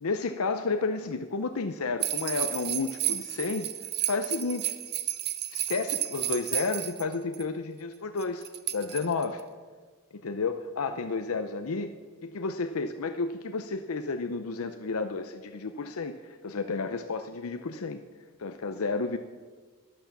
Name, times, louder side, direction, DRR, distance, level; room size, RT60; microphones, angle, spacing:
voice 1, 0.0-3.7 4.1-4.7 5.5-8.4 8.7-9.4 10.1-11.9 12.2-18.0 18.4-19.2, left 4 dB, 75° left, 8 dB, 0.7 m, -31 dB
sound 1, 2.0-7.4 8.2-9.4, right 13 dB, 50° right, 0.8 m, -32 dB
11.5 x 11.0 x 6.8 m, 1.5 s
head